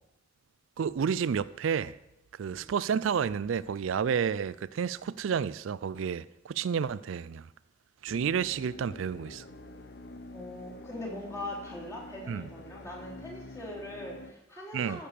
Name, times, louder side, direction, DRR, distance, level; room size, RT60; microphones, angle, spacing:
voice 1, 0.8-1.9 2.4-7.5 8.0-9.4 12.3-12.5 14.7-15.0, right 7 dB, 80° right, 0.4 m, -30 dB
sound 1, 8.1-14.3, left 2 dB, 55° left, 0.8 m, -47 dB
voice 2, 10.3-15.1, left 1 dB, 15° left, 3.6 m, -41 dB
14.5 x 6.7 x 6.9 m
head